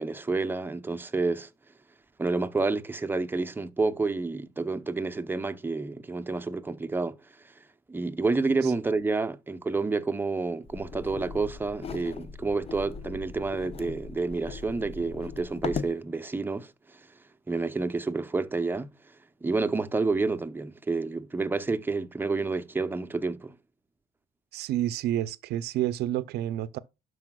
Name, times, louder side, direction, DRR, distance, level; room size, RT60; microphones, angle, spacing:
voice 1, 0.0-1.5 2.2-7.2 7.4-7.5 7.9-17.1 17.5-18.9 19.4-23.5, right 3 dB, 10° right, 0.7 m, -29 dB
sound 1, 10.7-16.0, left 5 dB, 35° left, 0.7 m, -39 dB
voice 2, 24.5-26.8, right 12 dB, 75° right, 0.6 m, -29 dB
12.0 x 4.9 x 2.3 m
cardioid pair, 110°, 17 cm